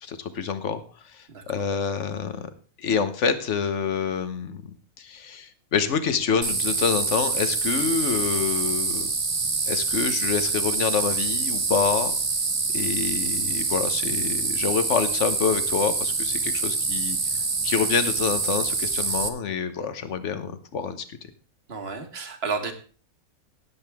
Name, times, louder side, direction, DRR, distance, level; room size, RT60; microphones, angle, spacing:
voice 1, 0.0-2.5 2.8-9.1 9.7-12.2 12.7-17.2 17.6-21.0, left 6 dB, 60° left, 11 dB, 1.4 m, -27 dB
sound 1, 6.4-19.3, right 4 dB, 30° right, 0.8 m, -26 dB
voice 2, 21.7-22.7, right 4 dB, 45° right, 6 dB, 1.8 m, -31 dB
18.0 x 7.9 x 3.5 m, 0.39 s
omnidirectional pair, 1.5 m